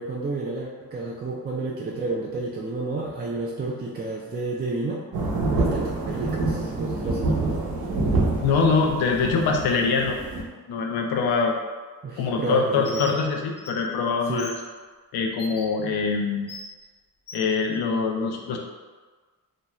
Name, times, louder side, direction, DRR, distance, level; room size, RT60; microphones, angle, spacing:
voice 1, 0.0-5.0 5.6-7.7 12.0-13.2 14.3-14.5, right 2 dB, 30° right, -3 dB, 0.4 m, -31 dB
sound 1, 5.1-10.4, right 2 dB, 80° right, 0.7 m, -26 dB
voice 2, 8.4-11.5 12.2-14.5 15.1-16.5 17.3-18.6, left 4 dB, 90° left, 2 dB, 0.5 m, -24 dB
Bird, 12.8-13.1 13.6-13.7 14.4-14.5 15.4-15.6 16.5-16.6 17.3-17.4, left 2 dB, 30° left, 0.6 m, -38 dB
2.5 x 2.2 x 3.0 m, 1.4 s
cardioid pair, 75°, 36 cm